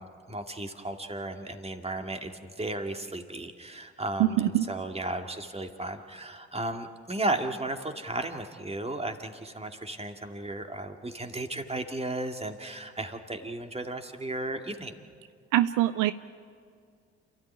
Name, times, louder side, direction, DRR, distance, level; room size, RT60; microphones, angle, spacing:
voice 1, 0.0-14.9, right 2 dB, 20° right, 5 dB, 2.3 m, -35 dB
voice 2, 4.2-4.7 15.5-16.1, right 14 dB, 70° right, 13 dB, 0.6 m, -23 dB
28.0 x 13.5 x 9.9 m, 2.2 s
hypercardioid pair, 50°, 32 cm